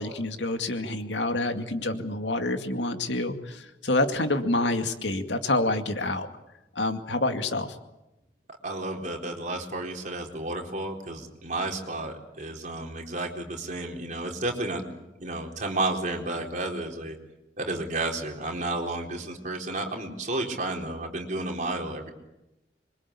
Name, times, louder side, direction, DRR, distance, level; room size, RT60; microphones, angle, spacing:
voice 1, 0.0-6.3 6.8-7.7, left 2 dB, 90° left, 7 dB, 2.4 m, -27 dB
voice 2, 8.6-14.8 15.2-17.2 17.6-22.1, right 2 dB, 45° right, 2 dB, 4.1 m, -32 dB
26.0 x 23.5 x 8.6 m, 0.93 s
head